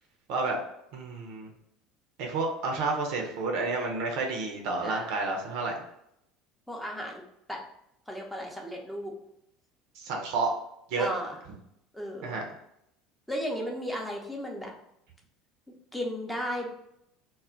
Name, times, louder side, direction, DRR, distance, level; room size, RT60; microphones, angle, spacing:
voice 1, 0.9-1.5 2.2-5.8 10.0-10.5 10.9-11.1 12.2-12.5, right 3 dB, 60° right, 1 dB, 0.5 m, -30 dB
voice 2, 4.8-5.3 6.7-7.2 7.5-7.6 8.1-9.1 11.0-11.4 11.9-12.3 13.3-14.7 15.9-16.7, equal, 5° left, 0 dB, 0.6 m, -35 dB
2.2 x 2.0 x 3.7 m, 0.78 s
figure-of-eight pair, 65°, 0 cm